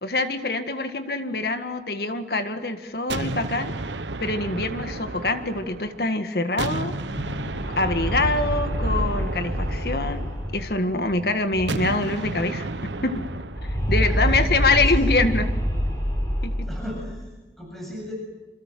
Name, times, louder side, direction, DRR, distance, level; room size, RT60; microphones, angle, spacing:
voice 1, 0.0-3.7 4.2-6.9 7.7-13.3 13.6-15.6 16.4-16.7, left 2 dB, 60° left, 8 dB, 1.8 m, -25 dB
sound 1, 3.1-6.1 6.6-10.8 11.7-13.8, right 2 dB, 85° right, 1.2 m, -32 dB
sound 2, 7.0-12.2 12.5-12.6 12.8-17.2, equal, 20° left, 8.0 m, -27 dB
voice 2, 13.9-15.0 16.6-18.1, equal, ahead, -2 dB, 7.9 m, -38 dB
28.0 x 27.5 x 7.7 m, 1.2 s
head